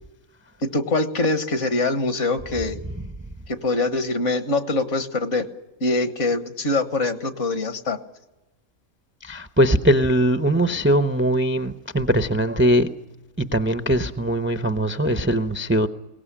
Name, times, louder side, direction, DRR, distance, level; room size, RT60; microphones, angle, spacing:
voice 1, 0.6-2.8 3.5-5.4 5.8-8.0, left 2 dB, 55° left, 1.7 m, -23 dB
voice 2, 9.2-12.9 13.5-15.9, right 1 dB, 10° right, 0.6 m, -20 dB
22.0 x 18.0 x 10.0 m
omnidirectional pair, 1.5 m